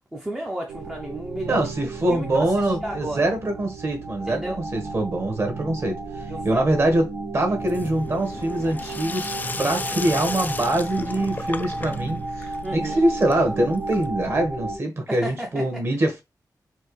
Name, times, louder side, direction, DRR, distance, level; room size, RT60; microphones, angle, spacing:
voice 1, 0.1-3.3 4.3-4.6 6.3-6.7 9.8-9.9 12.6-13.0 15.1-15.6, right 1 dB, 10° right, 0.7 m, -33 dB
sound 1, 0.7-14.8, right 2 dB, 80° right, 1.2 m, -33 dB
voice 2, 1.5-4.4 4.7-7.1 7.3-9.3 9.6-16.2, right 1 dB, 40° right, 1.4 m, -24 dB
Sink (filling or washing), 7.6-14.4, left 3 dB, 25° left, 0.4 m, -35 dB
4.4 x 2.9 x 3.2 m
wide cardioid pair, 170°, 7 cm